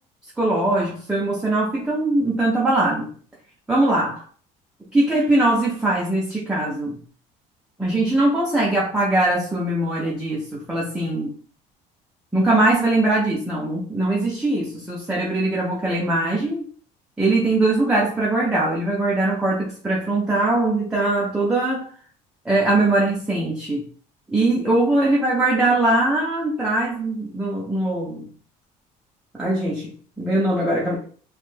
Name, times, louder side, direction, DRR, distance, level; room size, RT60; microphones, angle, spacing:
voice 1, 0.4-3.1 3.7-4.1 4.9-7.0 7.8-11.3 12.3-16.6 17.2-21.9 22.5-23.8 24.3-28.3 29.3-31.0, right 2 dB, 5° right, 0.4 m, -21 dB
2.5 x 2.1 x 3.1 m
cardioid pair, 155°, 16 cm